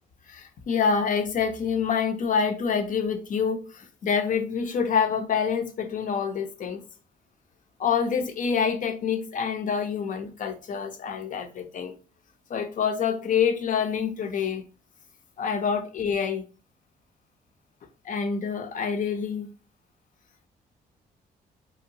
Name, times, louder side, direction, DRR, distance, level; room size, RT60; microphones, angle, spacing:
voice 1, 0.3-6.8 7.8-11.9 12.5-14.6 15.4-16.4 18.0-19.5, left 6 dB, 50° left, 0.5 m, -27 dB
2.9 x 2.2 x 2.6 m
supercardioid pair, 70°, 18 cm